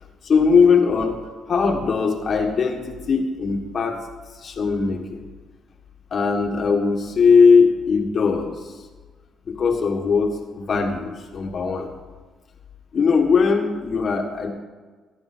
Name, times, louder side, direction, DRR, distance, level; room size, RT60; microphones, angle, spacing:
voice 1, 0.2-1.2 1.5-4.0 4.3-5.2 6.1-8.8 9.4-11.9 12.9-14.5, left 5 dB, 50° left, 2 dB, 1.6 m, -19 dB
15.0 x 10.5 x 4.4 m, 1.4 s
cardioid pair, 90°, 0 cm